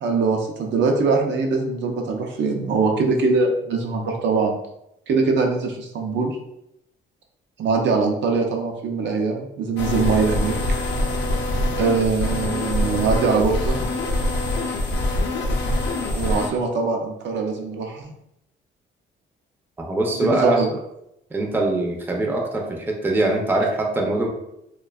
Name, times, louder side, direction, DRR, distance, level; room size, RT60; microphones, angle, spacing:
voice 1, 0.0-4.6 5.1-6.4 7.6-10.6 11.8-13.8 16.1-18.1 20.1-20.7, right 4 dB, 65° right, 2 dB, 0.5 m, -22 dB
sound 1, 9.8-16.5, left 2 dB, 65° left, 0.5 m, -24 dB
voice 2, 19.8-20.6 21.3-24.3, right 2 dB, 10° right, 0 dB, 0.4 m, -22 dB
2.5 x 2.2 x 2.2 m, 0.82 s
cardioid pair, 90°, 20 cm